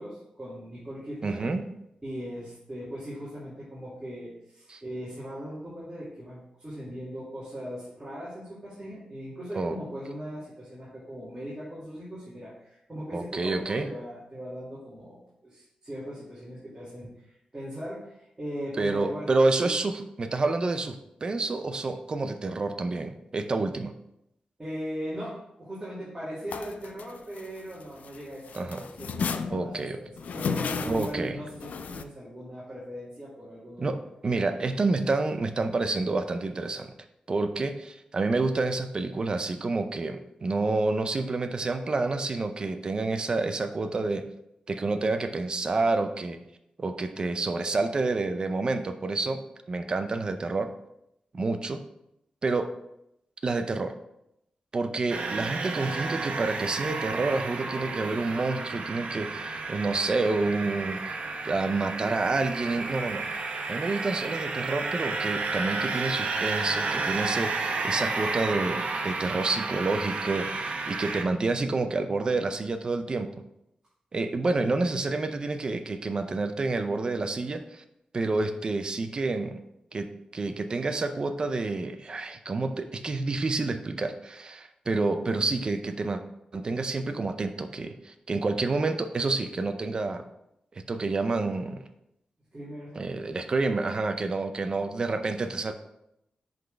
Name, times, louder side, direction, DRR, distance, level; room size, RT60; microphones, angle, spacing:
voice 1, 0.0-1.4 2.0-19.3 24.6-34.0 92.5-93.1, equal, 20° right, -9 dB, 2.3 m, -39 dB
voice 2, 1.2-1.6 4.7-4.8 9.5-9.8 13.1-13.9 18.8-23.9 28.5-28.8 29.5-30.0 30.9-31.4 33.8-36.9 37.3-44.3 44.7-46.4 46.8-49.4 49.7-50.7 51.3-51.8 52.4-52.7 53.4-53.9 54.7-61.1 61.4-63.2 63.7-73.3 74.1-77.8 78.1-79.6 79.9-86.2 86.5-90.2 90.7-91.8 93.0-95.7, right 3 dB, 35° right, 7 dB, 0.5 m, -28 dB
sound 1, 26.5-28.2 28.5-32.0, left 5 dB, 85° left, 0.4 m, -33 dB
sound 2, 55.1-71.2, right 3 dB, 70° right, 0.9 m, -32 dB
10.5 x 4.0 x 3.4 m, 0.82 s
wide cardioid pair, 135°, 2 cm